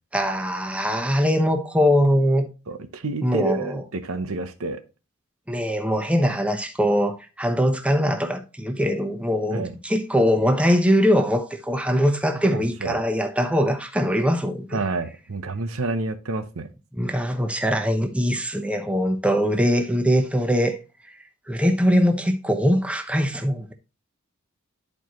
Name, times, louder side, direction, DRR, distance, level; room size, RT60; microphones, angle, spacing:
voice 1, 0.1-2.5 3.2-3.8 5.5-14.8 16.9-20.8 21.5-23.7, equal, 5° right, 0.8 m, -22 dB
voice 2, 2.7-4.8 9.5-9.7 12.5-13.0 14.7-16.7, right 3 dB, 70° right, 0.8 m, -29 dB
11.0 x 4.6 x 3.0 m
head